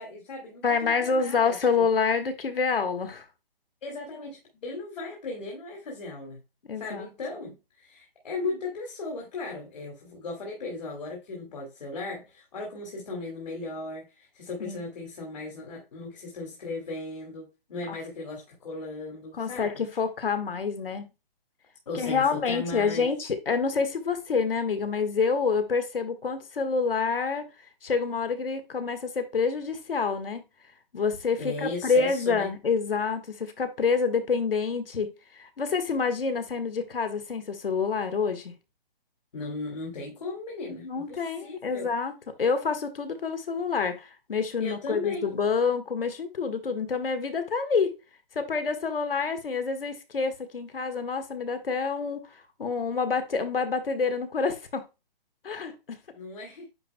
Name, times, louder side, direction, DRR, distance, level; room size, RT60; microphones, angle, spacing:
voice 1, 0.0-1.9 3.8-6.4 6.8-19.8 21.9-23.1 31.4-32.5 39.3-41.9 44.6-45.3 56.1-56.7, left 3 dB, 45° left, 2.4 m, -37 dB
voice 2, 0.6-3.2 6.7-7.1 14.6-14.8 17.9-18.0 19.3-21.1 21.9-27.5 27.8-30.4 30.9-38.5 40.7-42.1 42.4-47.9 48.3-54.8 55.4-56.0, left 5 dB, 70° left, 1.6 m, -27 dB
9.7 x 4.4 x 2.2 m
hypercardioid pair, 175°, 30 cm